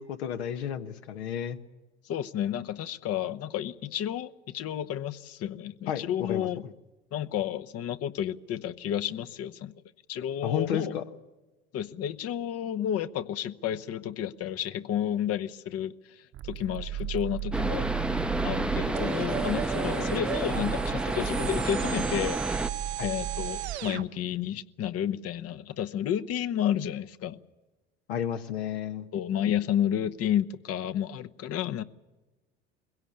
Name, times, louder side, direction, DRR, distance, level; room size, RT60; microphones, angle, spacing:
voice 1, 0.0-1.6 5.9-6.5 10.4-11.0 20.0-20.1 23.0-23.1 28.1-29.1, left 9 dB, 80° left, 1.3 m, -32 dB
voice 2, 2.0-6.6 7.1-9.7 10.1-10.9 11.7-17.9 18.4-22.4 23.0-27.4 29.1-31.8, left 10 dB, 50° left, 0.9 m, -31 dB
sound 1, 16.3-23.8, right 10 dB, 45° right, 1.0 m, -36 dB
sound 2, 17.5-22.7, right 1 dB, 5° right, 0.7 m, -30 dB
sound 3, 18.9-24.1, right 14 dB, 85° right, 0.9 m, -36 dB
22.0 x 17.0 x 8.8 m
hypercardioid pair, 70°, 32 cm